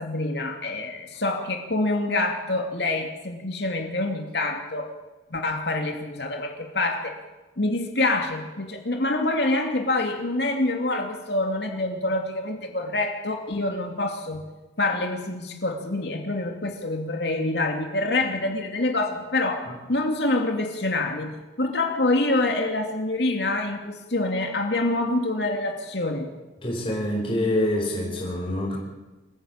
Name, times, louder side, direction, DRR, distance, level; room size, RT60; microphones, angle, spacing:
voice 1, 0.0-4.9 5.3-7.2 7.6-14.4 14.8-26.3, left 2 dB, 60° left, 3 dB, 2.7 m, -26 dB
voice 2, 26.6-28.8, left 1 dB, 30° left, -2 dB, 5.1 m, -26 dB
27.0 x 15.5 x 8.8 m, 1.1 s
head